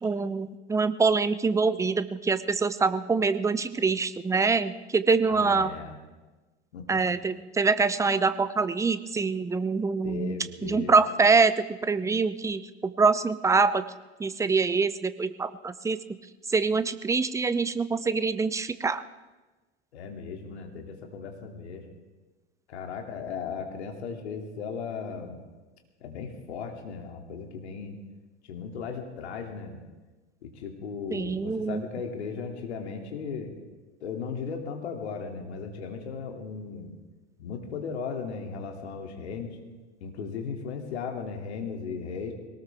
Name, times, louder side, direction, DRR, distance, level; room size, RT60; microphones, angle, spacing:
voice 1, 0.0-5.7 6.9-10.3 10.6-13.8 14.2-16.0 16.5-19.0 31.1-31.8, right 4 dB, 10° right, 14 dB, 0.6 m, -25 dB
voice 2, 5.3-6.0 6.7-7.0 10.0-11.0 19.9-21.9 22.7-25.4 26.0-28.0 28.4-29.8 30.4-33.6 34.0-37.0 37.4-39.6 40.0-42.3, left 5 dB, 65° left, 3 dB, 2.6 m, -36 dB
21.5 x 18.5 x 3.5 m, 1.2 s
figure-of-eight pair, 85°, 35 cm